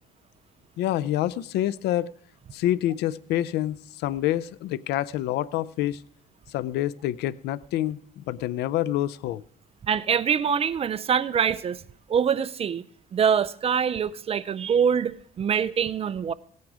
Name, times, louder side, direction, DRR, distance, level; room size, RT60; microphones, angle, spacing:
voice 1, 0.8-2.1 2.5-6.0 6.5-9.4, left 13 dB, 80° left, 0.5 m, -27 dB
voice 2, 9.8-11.8 12.1-12.8 13.1-16.3, right 7 dB, 35° right, 0.6 m, -24 dB
17.0 x 9.5 x 4.8 m
cardioid pair, 110°, 17 cm